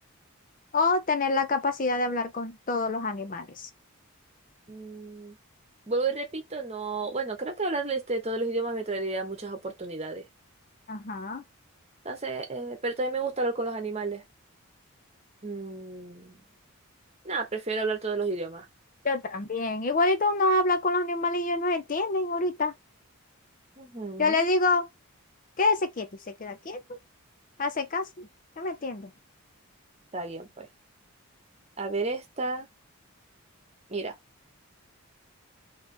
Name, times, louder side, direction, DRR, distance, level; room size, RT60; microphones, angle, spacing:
voice 1, 0.7-3.7 10.9-11.4 19.0-22.7 24.2-24.9 25.6-26.1 26.4-26.8 27.6-28.3 28.6-29.1, left 3 dB, 35° left, 0.5 m, -26 dB
voice 2, 4.7-5.4 5.9-10.2 12.0-14.2 15.4-16.4 17.2-18.6 23.8-24.5 30.1-30.7 31.8-32.7 33.9-34.1, right 3 dB, 30° right, 1.0 m, -32 dB
3.4 x 2.9 x 4.3 m
head